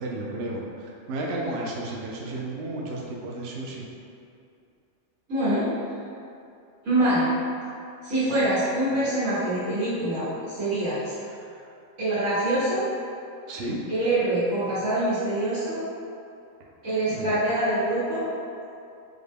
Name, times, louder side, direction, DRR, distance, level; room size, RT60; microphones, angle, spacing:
voice 1, 0.0-3.9 11.4-11.6 13.5-13.8 17.1-17.4, right 2 dB, 65° right, -3 dB, 0.7 m, -33 dB
voice 2, 5.3-5.7 6.8-7.3 8.0-11.1 12.0-12.8 13.9-15.8 16.8-18.3, right 1 dB, 85° right, -14 dB, 1.7 m, -25 dB
4.9 x 2.1 x 3.4 m, 2.6 s
omnidirectional pair, 1.3 m